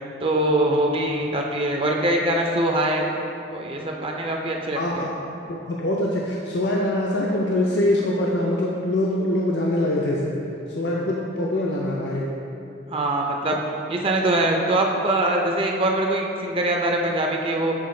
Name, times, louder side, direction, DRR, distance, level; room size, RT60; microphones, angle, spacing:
voice 1, 0.2-3.1 3.5-5.1 12.9-13.6 13.9-17.7, right 1 dB, 30° right, 1 dB, 0.4 m, -23 dB
voice 2, 4.7-5.1 5.5-10.3 10.7-12.3, left 1 dB, 60° left, -3 dB, 0.5 m, -24 dB
7.5 x 3.9 x 3.7 m, 2.8 s
head